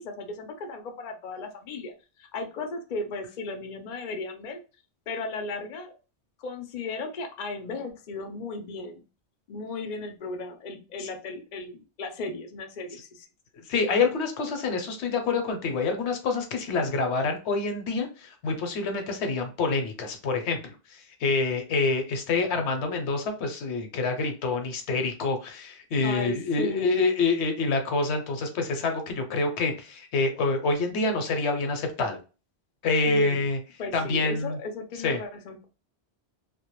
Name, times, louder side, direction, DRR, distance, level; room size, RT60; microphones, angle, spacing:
voice 1, 0.0-1.9 2.2-4.6 5.1-5.9 6.4-9.0 9.5-13.3 26.0-27.1 33.1-33.5 33.8-35.6, left 3 dB, 55° left, 4 dB, 0.5 m, -36 dB
voice 2, 13.7-32.2 32.8-33.6 33.9-34.6 35.0-35.2, left 3 dB, 75° left, 5 dB, 0.9 m, -27 dB
2.2 x 2.1 x 2.9 m, 0.32 s
omnidirectional pair, 1.1 m